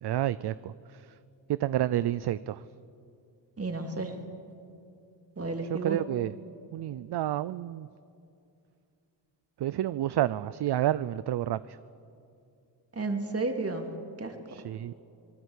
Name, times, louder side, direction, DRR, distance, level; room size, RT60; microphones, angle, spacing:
voice 1, 0.0-0.7 1.5-2.6 5.7-6.3 6.7-7.9 9.6-11.8 14.5-14.9, right 12 dB, 60° right, 16 dB, 0.6 m, -29 dB
voice 2, 3.6-4.2 5.4-6.0 12.9-13.9 14.2-14.4, right 3 dB, 30° right, 4 dB, 3.2 m, -32 dB
25.5 x 19.0 x 8.4 m, 2.5 s
cardioid pair, 80°, 47 cm